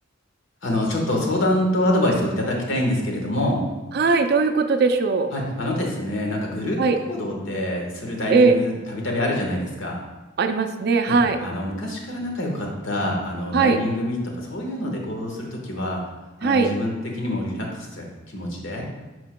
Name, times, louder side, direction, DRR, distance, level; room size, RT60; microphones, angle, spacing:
voice 1, 0.6-3.6 5.3-6.8 7.1-10.0 11.1-16.0 16.4-18.9, left 1 dB, 65° left, 0 dB, 1.3 m, -26 dB
voice 2, 3.9-5.3 6.8-7.0 8.3-8.5 10.4-11.4 13.5-13.8 16.4-16.7, right 4 dB, 50° right, 7 dB, 0.4 m, -19 dB
11.0 x 4.5 x 2.2 m, 1.2 s
head